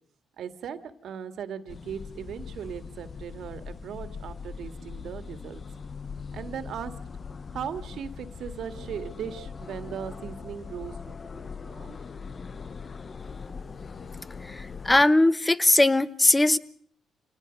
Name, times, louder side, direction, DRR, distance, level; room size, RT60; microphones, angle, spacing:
voice 1, 0.4-5.6 6.3-6.9 7.5-12.0, right 8 dB, 70° right, 9 dB, 2.0 m, -38 dB
sound 1, 1.7-15.0, left 5 dB, 40° left, 0.9 m, -41 dB
voice 2, 14.5-16.6, left 1 dB, 15° left, 15 dB, 1.0 m, -20 dB
27.5 x 19.0 x 5.3 m, 0.63 s
cardioid pair, 90°, 0 cm